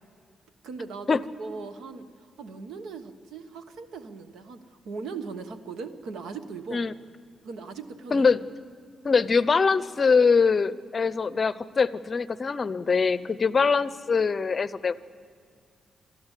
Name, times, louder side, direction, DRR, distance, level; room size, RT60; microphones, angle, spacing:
voice 1, 0.6-6.9 7.4-8.3, right 4 dB, 90° right, 9 dB, 1.2 m, -39 dB
voice 2, 8.1-8.4 9.0-14.9, left 5 dB, 35° left, 16 dB, 0.6 m, -23 dB
24.0 x 14.0 x 8.3 m, 2.2 s
cardioid pair, 110°, 0 cm